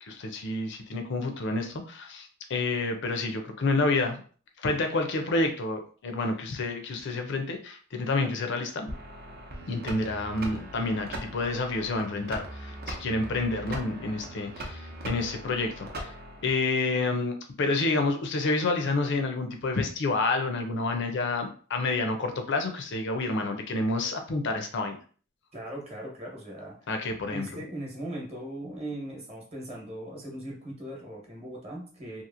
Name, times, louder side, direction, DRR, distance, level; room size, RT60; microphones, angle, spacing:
voice 1, 0.0-4.2 4.6-8.9 9.7-16.1 16.4-25.0 26.9-27.6, left 3 dB, 60° left, 6 dB, 0.6 m, -29 dB
sound 1, 8.9-16.5, right 1 dB, 50° right, 0.7 m, -40 dB
voice 2, 25.5-26.8 27.3-32.2, right 1 dB, 30° right, -2 dB, 1.0 m, -39 dB
2.9 x 2.5 x 2.5 m, 0.41 s
head